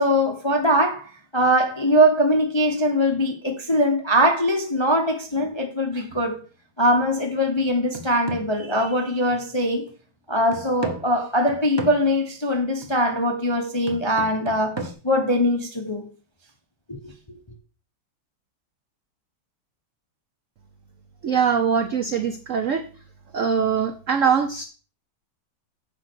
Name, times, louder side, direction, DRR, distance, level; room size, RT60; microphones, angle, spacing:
voice 1, 0.0-6.4 6.8-9.9 10.3-16.1 16.9-17.0, equal, 25° left, 0.6 m, -22 dB
sound 1, 6.1-6.4 6.9-7.1 7.6-9.5 9.9-10.0 10.5-12.2 12.8-13.1 13.9-14.9, right 2 dB, 25° right, 0.6 m, -36 dB
voice 2, 21.2-22.8 23.3-24.6, right 7 dB, 70° right, 0.7 m, -22 dB
7.4 x 5.1 x 6.1 m
omnidirectional pair, 2.2 m